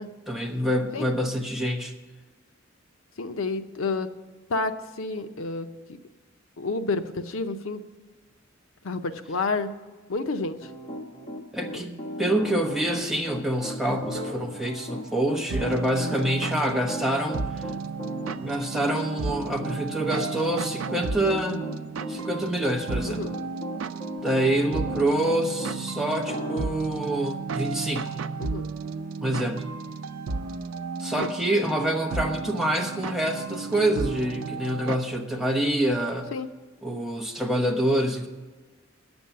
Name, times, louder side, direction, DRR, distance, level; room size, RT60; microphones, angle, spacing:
voice 1, 0.3-1.9 11.5-17.7 18.4-21.7 22.1-23.2 24.2-28.1 29.2-29.6 31.0-36.3 36.8-38.3, right 1 dB, ahead, 2 dB, 0.9 m, -26 dB
voice 2, 3.2-4.1 4.5-6.0 6.6-7.8 8.8-9.7 10.1-10.6 11.7-11.8 21.5-21.6 23.1-23.3 28.4-28.7 31.2-31.3 36.3-36.5, left 3 dB, 80° left, 9 dB, 0.7 m, -30 dB
Piano, 10.6-25.8 26.3-26.6, equal, 30° left, 1.1 m, -37 dB
sound 1, 14.1-20.3 20.9-21.1 21.4-22.1 23.1-23.2, left 1 dB, 35° right, 1.3 m, -49 dB
sound 2, 15.5-35.0, right 4 dB, 85° right, 0.5 m, -33 dB
9.3 x 7.1 x 8.9 m, 1.3 s
head